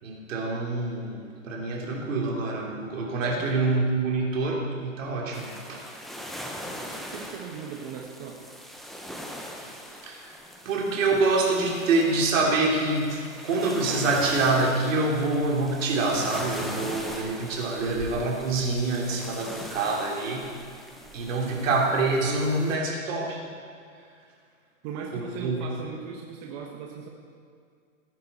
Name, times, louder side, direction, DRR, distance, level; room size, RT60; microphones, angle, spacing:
voice 1, 0.0-5.8 9.7-9.8 10.0-10.3 10.6-20.5 21.1-23.4 25.1-25.7, right 3 dB, 70° right, -1 dB, 3.1 m, -26 dB
sound 1, 5.3-22.8, equal, ahead, 0.9 m, -41 dB
voice 2, 7.1-8.5 9.6-9.7 21.4-21.5 24.8-27.1, right 6 dB, 40° right, 0 dB, 1.4 m, -38 dB
18.0 x 9.8 x 4.3 m, 2.2 s
hypercardioid pair, 130°, 40 cm